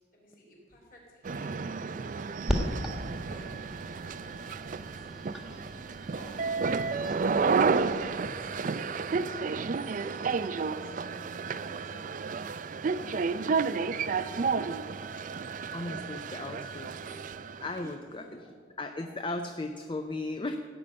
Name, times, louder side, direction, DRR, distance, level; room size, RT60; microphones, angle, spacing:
voice 1, 0.1-2.9 3.1-3.5 4.0-5.1 6.1-12.3 17.8-18.5 18.9-19.1, right 1 dB, 45° left, -3 dB, 4.1 m, -53 dB
sound 1, 1.2-17.8, right 5 dB, 45° right, 0.4 m, -31 dB
sound 2, 2.5-8.2, equal, 5° right, 1.2 m, -38 dB
voice 2, 15.7-17.0 17.6-18.2 18.8-20.6, left 2 dB, 25° left, 6 dB, 0.5 m, -36 dB
sound 3, 16.9-18.7, right 2 dB, 70° left, 3.6 m, -57 dB
15.5 x 5.5 x 8.6 m, 2.1 s
head